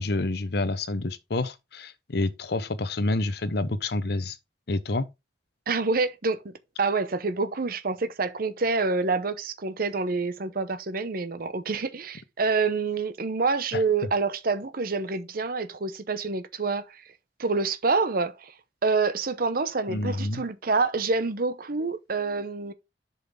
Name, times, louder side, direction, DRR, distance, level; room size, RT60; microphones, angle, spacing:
voice 1, 0.0-4.4 4.7-5.1 13.7-13.8 19.9-20.4, left 2 dB, 65° left, 0.8 m, -28 dB
voice 2, 5.7-6.5 6.8-17.0 17.4-18.5 18.8-22.7, right 4 dB, 55° right, 0.8 m, -27 dB
7.3 x 5.7 x 3.6 m
head